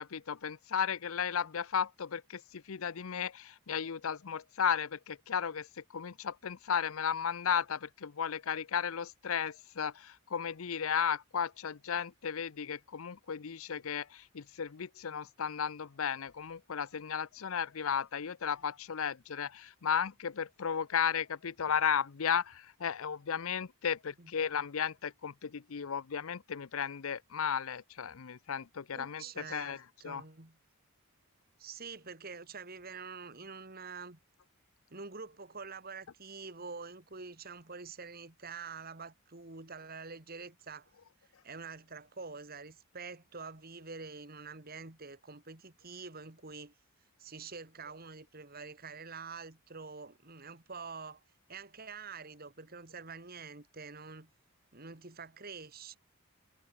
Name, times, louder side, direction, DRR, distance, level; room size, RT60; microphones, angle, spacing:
voice 1, 0.0-29.8 30.0-30.2, left 7 dB, 70° left, 0.6 m, -34 dB
voice 2, 28.9-30.6 31.6-34.2 34.9-40.9 41.4-46.7 47.2-51.2 51.5-54.3 54.7-56.0, right 4 dB, 45° right, 2.1 m, -46 dB
head